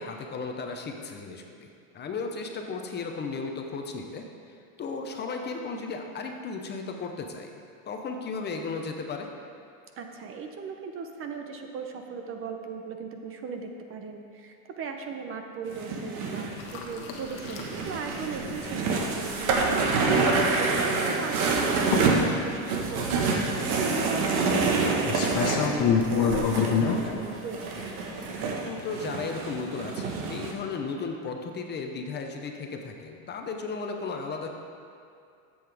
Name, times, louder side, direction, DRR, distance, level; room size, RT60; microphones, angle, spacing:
voice 1, 0.0-7.5 7.9-9.3 18.6-18.8 26.6-26.9 28.6-34.5, left 4 dB, 25° left, 3 dB, 0.8 m, -35 dB
voice 2, 9.9-20.0 20.5-27.8, right 5 dB, 30° right, 4 dB, 0.7 m, -38 dB
sound 1, 15.7-30.5, right 4 dB, 80° right, 1.5 m, -27 dB
sound 2, 16.6-28.4, left 6 dB, 50° left, 1.3 m, -30 dB
13.0 x 7.9 x 3.5 m, 2.5 s
supercardioid pair, 130°, 42 cm